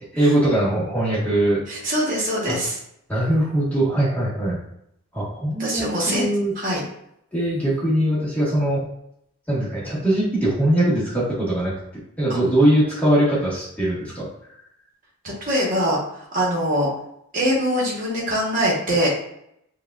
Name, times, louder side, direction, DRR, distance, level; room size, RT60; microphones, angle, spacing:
voice 1, 0.1-1.6 2.5-2.6 3.1-4.6 5.1-6.5 7.3-8.9 9.5-14.3, right 1 dB, 5° left, -8 dB, 1.3 m, -21 dB
voice 2, 1.7-2.8 5.6-6.3 6.6-6.8 15.2-16.0 16.3-16.9 17.3-19.1, equal, 35° right, -3 dB, 1.1 m, -22 dB
6.4 x 2.4 x 2.4 m, 0.76 s
head